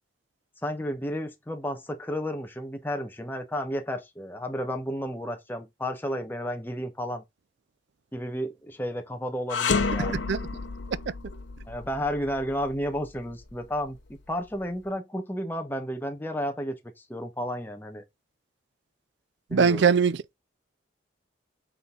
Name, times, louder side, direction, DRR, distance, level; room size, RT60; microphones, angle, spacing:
voice 1, 0.6-7.2 8.1-10.2 11.7-18.0 19.5-19.9, equal, 10° left, 1.0 m, -32 dB
sound 1, 9.5-14.7, left 4 dB, 80° left, 0.9 m, -31 dB
voice 2, 10.0-10.4 19.5-20.3, right 6 dB, 70° right, 0.5 m, -22 dB
8.0 x 3.9 x 3.8 m
head